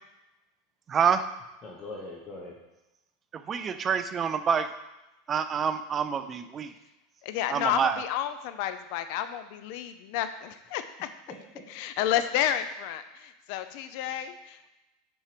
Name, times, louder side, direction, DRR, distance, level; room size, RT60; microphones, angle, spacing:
voice 1, 0.9-1.3 3.3-4.7 5.3-6.7 7.5-8.0, right 7 dB, 20° right, 10 dB, 0.3 m, -27 dB
voice 2, 1.6-2.6 11.0-11.6 13.6-13.9, left 2 dB, 20° left, -2 dB, 0.8 m, -43 dB
voice 3, 7.2-11.1 11.8-14.6, left 10 dB, 50° left, 10 dB, 0.5 m, -31 dB
6.0 x 4.4 x 5.0 m, 0.99 s
supercardioid pair, 170°, 0 cm